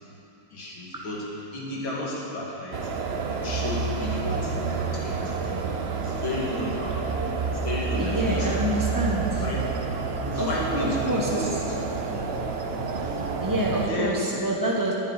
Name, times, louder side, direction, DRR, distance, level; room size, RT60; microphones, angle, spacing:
voice 1, 0.5-1.2 1.5-2.9 3.3-5.6 5.9-7.0 7.6-8.7 9.4-9.6 10.2-12.3 13.0-13.4 13.9-14.2, left 1 dB, 85° left, -5 dB, 3.1 m, -33 dB
sound 1, 2.7-13.9, right 5 dB, 50° right, 0.7 m, -29 dB
voice 2, 7.9-9.4 10.4-10.5 10.8-11.6 13.4-14.9, right 1 dB, 20° right, -3 dB, 0.5 m, -27 dB
11.0 x 7.5 x 9.5 m, 2.9 s
omnidirectional pair, 2.1 m